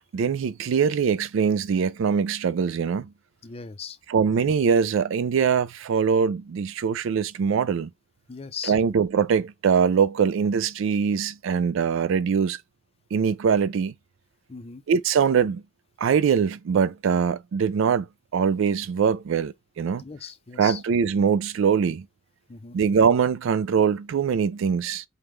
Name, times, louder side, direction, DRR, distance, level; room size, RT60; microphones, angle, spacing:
voice 1, 0.1-3.1 4.1-7.9 8.7-12.6 13.1-13.9 14.9-15.6 16.0-18.1 18.3-20.0 20.6-22.0 22.7-25.0, right 6 dB, 70° right, 0.3 m, -22 dB
voice 2, 3.4-4.0 8.3-8.8 14.5-14.8 20.0-20.8 22.5-22.8, left 6 dB, 30° left, 0.5 m, -38 dB
5.2 x 2.1 x 3.1 m
head